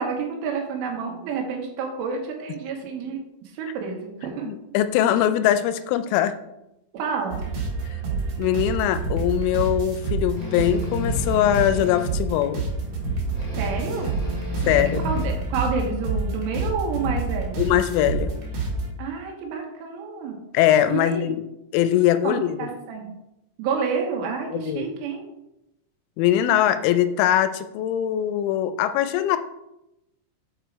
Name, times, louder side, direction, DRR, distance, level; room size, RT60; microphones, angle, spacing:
voice 1, 0.0-3.2 3.5-4.5 6.9-7.4 13.6-14.1 14.6-17.6 19.0-20.4 20.9-21.3 22.2-23.2 23.6-25.3, right 5 dB, 80° right, 2 dB, 3.4 m, -29 dB
voice 2, 4.5-6.3 8.4-12.7 14.7-15.0 17.6-18.3 20.5-21.4 21.7-22.7 24.5-24.8 26.2-29.4, left 11 dB, 85° left, 10 dB, 3.0 m, -21 dB
sound 1, 7.3-18.9, right 3 dB, 60° right, 2.8 m, -28 dB
sound 2, 10.3-12.2 13.3-15.2, left 1 dB, 45° left, 0.9 m, -34 dB
8.1 x 4.8 x 4.5 m, 0.88 s
omnidirectional pair, 5.8 m